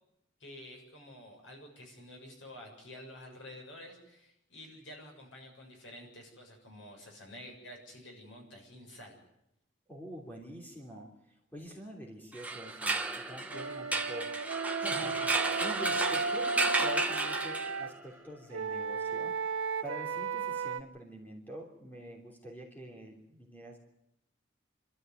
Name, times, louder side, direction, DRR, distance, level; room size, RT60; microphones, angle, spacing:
voice 1, 0.4-9.2 14.9-15.3, left 1 dB, 70° left, 1 dB, 7.0 m, -50 dB
voice 2, 9.9-11.1 11.5-14.3 14.7-19.3 19.8-23.8, right 1 dB, 10° left, -1 dB, 3.3 m, -46 dB
sound 1, 12.3-18.0, right 3 dB, 5° right, 1.3 m, -33 dB
Wind instrument woodwind instrument, 13.5-17.9 18.5-20.8, right 4 dB, 90° right, 1.0 m, -35 dB
27.5 x 13.5 x 9.4 m, 0.84 s
head